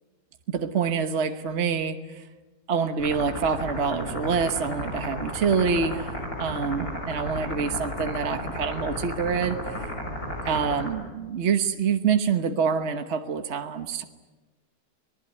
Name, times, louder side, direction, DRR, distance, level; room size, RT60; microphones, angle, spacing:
voice 1, 0.5-2.2 2.7-9.8 10.4-14.0, right 6 dB, 45° right, 7 dB, 1.4 m, -26 dB
sound 1, 3.0-10.9, left 1 dB, 65° left, 6.9 m, -33 dB
26.0 x 19.5 x 9.7 m, 1.2 s
omnidirectional pair, 1.7 m